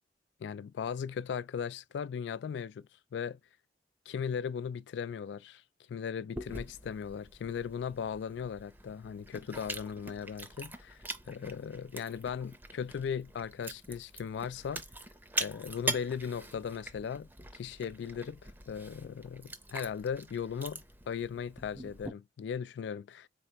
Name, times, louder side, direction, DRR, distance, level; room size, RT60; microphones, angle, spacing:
voice 1, 0.4-3.4 4.1-5.6 5.9-11.0 11.3-14.8 15.4-23.3, left 7 dB, 85° left, 0.3 m, -38 dB
Chewing mastication, 6.4-22.1, right 2 dB, 10° right, 0.6 m, -43 dB
4.6 x 2.0 x 3.9 m
head